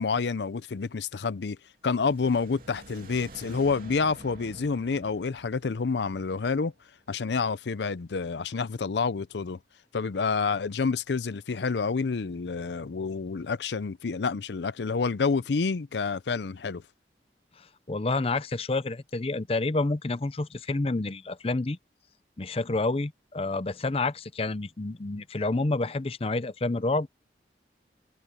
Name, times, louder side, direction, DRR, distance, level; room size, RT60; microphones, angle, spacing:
voice 1, 0.0-1.6 1.8-6.7 7.1-9.6 9.9-16.8, left 4 dB, 75° left, 0.5 m, -28 dB
sound 1, 1.9-7.0, right 2 dB, 55° right, 3.0 m, -49 dB
voice 2, 17.6-21.8 22.4-27.1, left 2 dB, 35° left, 0.6 m, -29 dB
head